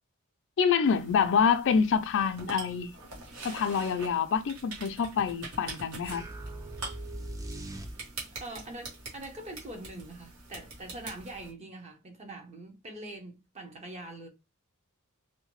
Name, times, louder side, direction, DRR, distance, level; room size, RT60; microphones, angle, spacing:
voice 1, 0.6-2.9 3.4-6.3, left 6 dB, 60° left, 0.4 m, -26 dB
sound 1, 0.8-11.5, right 3 dB, 85° right, 1.1 m, -45 dB
sound 2, 6.1-8.4, right 1 dB, 15° right, 0.3 m, -40 dB
voice 2, 8.4-14.3, right 1 dB, 30° right, 0.7 m, -43 dB
2.8 x 2.1 x 3.0 m
head